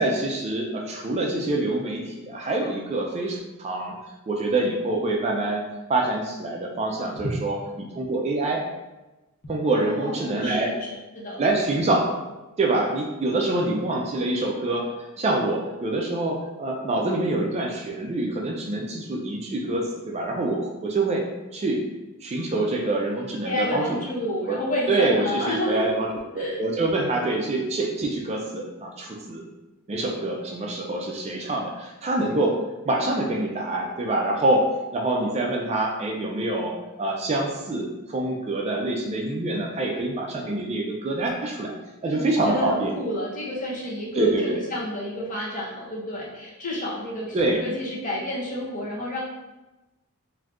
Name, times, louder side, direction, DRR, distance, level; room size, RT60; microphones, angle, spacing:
voice 1, 0.0-4.0 4.3-5.6 5.9-8.6 9.5-10.7 11.4-12.1 12.6-14.9 15.2-21.2 21.5-21.8 22.2-24.0 24.5-24.6 24.9-26.1 26.3-29.4 29.9-34.6 34.9-36.7 37.0-41.7 42.0-42.9 44.1-44.6 47.3-47.6, right 2 dB, 30° right, 0 dB, 0.3 m, -25 dB
voice 2, 9.6-10.9 11.1-11.4 23.4-25.9 26.4-26.6 42.0-49.2, left 1 dB, 35° left, -4 dB, 0.7 m, -30 dB
3.5 x 2.6 x 2.3 m, 1.1 s
head